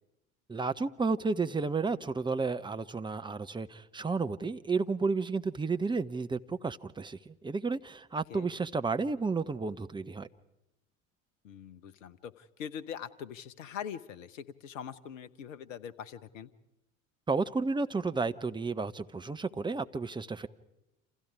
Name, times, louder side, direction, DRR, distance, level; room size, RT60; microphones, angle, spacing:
voice 1, 0.5-10.3 17.3-20.5, right 4 dB, 10° right, 10 dB, 0.9 m, -32 dB
voice 2, 11.4-16.5, left 8 dB, 65° left, 15 dB, 1.2 m, -43 dB
29.0 x 27.5 x 4.9 m, 0.92 s
figure-of-eight pair, 65°, 41 cm